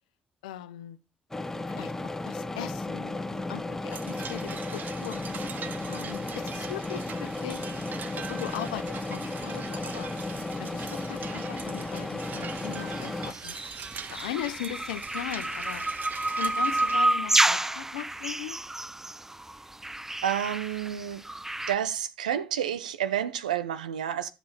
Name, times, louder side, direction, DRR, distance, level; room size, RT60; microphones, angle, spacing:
voice 1, 0.4-1.0 1.7-5.2 5.9-7.7 8.2-10.1 10.6-13.5 14.1-15.8 16.3-18.6, left 12 dB, 75° left, 0.7 m, -39 dB
sound 1, 1.3-13.3, left 2 dB, 10° left, 1.1 m, -34 dB
sound 2, 3.9-17.0, right 7 dB, 45° right, 0.7 m, -42 dB
sound 3, 13.3-21.7, right 2 dB, 10° right, 0.5 m, -29 dB
voice 2, 20.2-21.2 21.7-24.3, right 10 dB, 80° right, 0.7 m, -30 dB
12.0 x 7.6 x 4.1 m
figure-of-eight pair, 45°, 4 cm